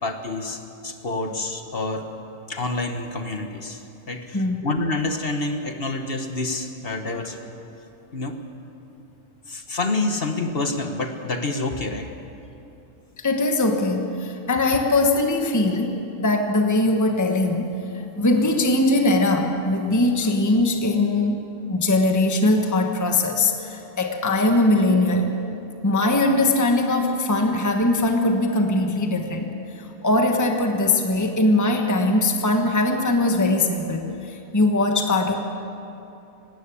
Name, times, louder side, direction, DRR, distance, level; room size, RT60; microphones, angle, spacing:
voice 1, 0.0-2.1 2.5-3.8 4.1-7.4 8.1-8.4 9.5-12.1, left 2 dB, 40° left, 6 dB, 1.4 m, -28 dB
voice 2, 13.2-17.8 18.2-21.4 21.7-25.3 25.8-29.5 29.7-35.4, left 2 dB, 15° left, 3 dB, 1.3 m, -21 dB
19.0 x 17.5 x 8.5 m, 2.8 s
omnidirectional pair, 1.5 m